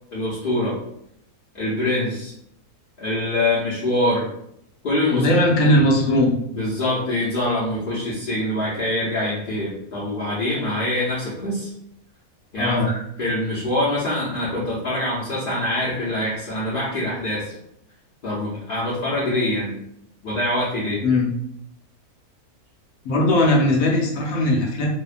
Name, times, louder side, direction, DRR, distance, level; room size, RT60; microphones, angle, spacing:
voice 1, 0.1-0.8 1.5-2.3 3.0-4.3 4.8-5.4 5.6-5.7 6.5-11.7 12.5-17.5 18.2-19.8 20.2-21.1, left 1 dB, 50° left, -8 dB, 0.6 m, -24 dB
voice 2, 5.1-6.3 12.6-12.9 21.0-21.3 23.0-24.9, left 1 dB, 70° left, -1 dB, 1.0 m, -18 dB
2.8 x 2.1 x 2.4 m, 0.75 s
omnidirectional pair, 1.6 m